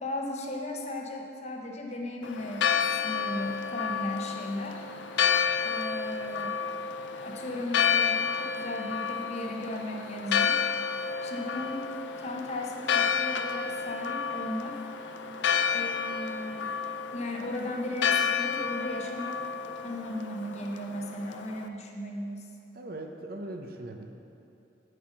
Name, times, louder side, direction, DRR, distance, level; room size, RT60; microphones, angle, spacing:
voice 1, 0.0-4.9 5.6-6.5 7.2-10.6 11.2-11.9 12.2-14.8 15.7-16.7 17.1-19.4 19.8-22.5, left 1 dB, 35° left, 1 dB, 0.9 m, -36 dB
Church bell, 2.2-21.7, left 7 dB, 70° left, 0.5 m, -30 dB
voice 2, 22.7-24.1, right 1 dB, 50° right, 4 dB, 0.7 m, -39 dB
7.8 x 7.6 x 6.5 m, 2.8 s
head